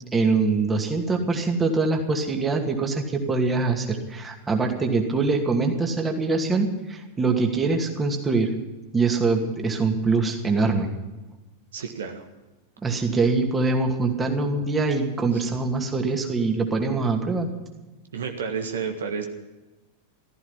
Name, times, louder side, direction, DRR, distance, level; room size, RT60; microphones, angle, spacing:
voice 1, 0.1-8.5 8.9-10.9 12.8-17.5, right 3 dB, 15° right, 3 dB, 2.5 m, -23 dB
voice 2, 11.7-12.3 15.3-15.5 18.1-19.3, right 6 dB, 65° right, 4 dB, 1.6 m, -31 dB
15.0 x 14.5 x 5.8 m, 1.1 s
figure-of-eight pair, 90°, 0 cm